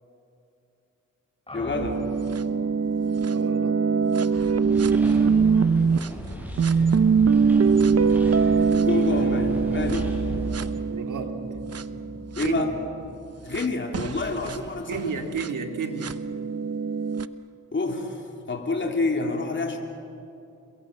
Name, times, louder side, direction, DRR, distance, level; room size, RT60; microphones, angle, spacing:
voice 1, 1.5-2.0 4.9-5.0 8.7-10.1 12.4-12.7 13.4-15.1 17.7-19.8, left 3 dB, 40° left, 1 dB, 3.5 m, -28 dB
sound 1, 1.5-14.3, left 1 dB, 20° left, 3.8 m, -45 dB
sound 2, 1.7-6.1 6.6-12.5 13.5-13.6 13.9-17.3, right 5 dB, 50° right, 1.0 m, -23 dB
voice 2, 3.3-3.8 10.9-11.4 12.4-12.8 14.9-16.2, right 5 dB, 75° right, 4 dB, 2.7 m, -32 dB
sound 3, 4.7-10.6, equal, 5° right, 7.2 m, -36 dB
29.0 x 22.5 x 7.5 m, 2.7 s
cardioid pair, 60°, 31 cm